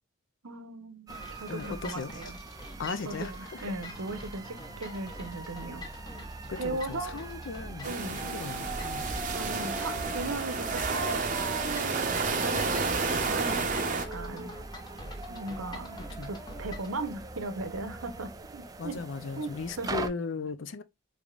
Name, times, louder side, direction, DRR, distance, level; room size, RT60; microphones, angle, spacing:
voice 1, 0.4-2.4 3.0-5.9 6.5-7.2 7.8-8.2 9.3-14.5 15.3-19.0 19.4-20.0, right 3 dB, 85° right, 0.9 m, -38 dB
sound 1, 1.1-17.0, left 1 dB, 20° left, 0.7 m, -45 dB
sound 2, 1.1-20.1, right 2 dB, 20° right, 0.3 m, -42 dB
voice 2, 1.5-2.1 2.8-3.8 6.5-9.1 16.2-16.3 18.8-20.8, left 4 dB, 60° left, 0.5 m, -37 dB
sound 3, 7.8-14.1, right 4 dB, 40° right, 0.7 m, -31 dB
3.6 x 3.4 x 2.4 m
head